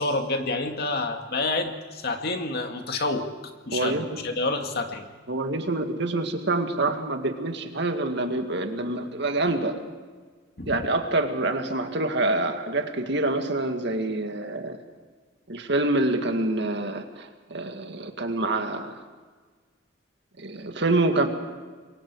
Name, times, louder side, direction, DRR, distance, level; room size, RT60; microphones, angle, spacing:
voice 1, 0.0-3.3 3.7-5.0 10.6-10.8, left 2 dB, 55° left, 4 dB, 2.2 m, -28 dB
voice 2, 3.7-4.2 5.3-9.8 10.7-14.8 15.5-18.9 20.4-21.3, right 2 dB, 60° right, 5 dB, 2.1 m, -26 dB
28.0 x 22.5 x 4.8 m, 1.5 s
head